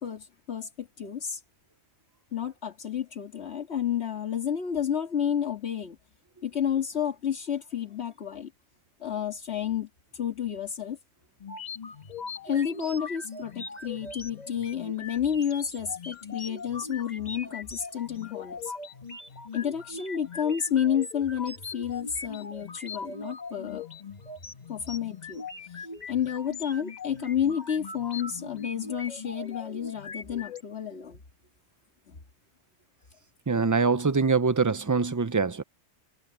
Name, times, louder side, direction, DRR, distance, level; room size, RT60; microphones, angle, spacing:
voice 1, 0.0-1.4 2.3-6.0 6.4-8.5 9.0-9.9 10.2-11.0 12.5-18.7 19.5-23.8 24.7-25.4 26.1-31.2 32.1-32.2, left 9 dB, 75° left, 2.1 m, -30 dB
sound 1, 11.4-30.6, left 4 dB, 40° left, 1.4 m, -40 dB
voice 2, 33.5-35.6, right 4 dB, 30° right, 0.4 m, -24 dB
omnidirectional pair, 1.1 m